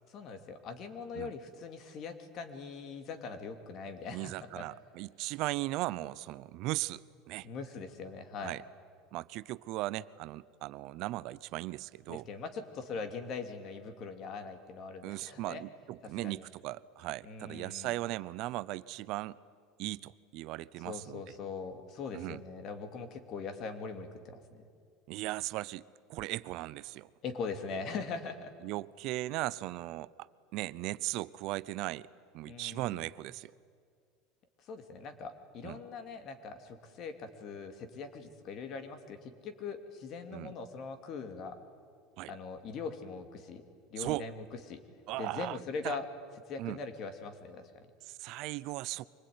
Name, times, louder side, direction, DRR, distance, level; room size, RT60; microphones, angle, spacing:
voice 1, 0.1-4.7 7.4-8.5 12.1-15.6 16.2-16.4 17.2-17.9 20.8-24.6 27.2-28.5 32.4-33.0 34.7-41.6 42.3-43.6 43.9-44.8 45.2-46.1 46.5-47.9, left 4 dB, 50° left, 2.7 m, -41 dB
voice 2, 4.1-7.5 8.4-8.6 9.1-12.3 15.0-19.4 19.8-21.2 22.1-22.4 25.1-25.8 26.1-27.1 28.6-30.1 30.5-32.1 32.3-33.5 35.6-35.8 40.3-40.5 42.2-42.3 44.0-44.3 45.1-45.6 45.8-46.0 46.6-46.8 48.0-49.1, right 18 dB, 60° right, 0.6 m, -37 dB
25.0 x 20.0 x 9.5 m
supercardioid pair, 120°, 0 cm